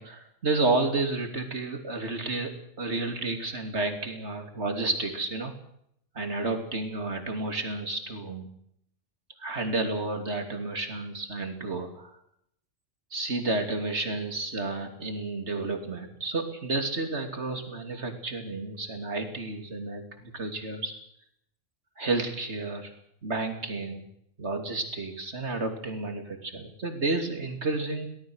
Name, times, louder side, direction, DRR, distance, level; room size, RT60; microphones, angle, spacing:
voice 1, 0.0-2.5 2.8-5.5 6.1-8.5 9.4-12.1 13.1-20.9 22.0-22.9 23.2-24.0 24.4-28.1, right 3 dB, 65° right, 5 dB, 3.3 m, -31 dB
23.5 x 18.5 x 6.4 m, 0.72 s
omnidirectional pair, 1.3 m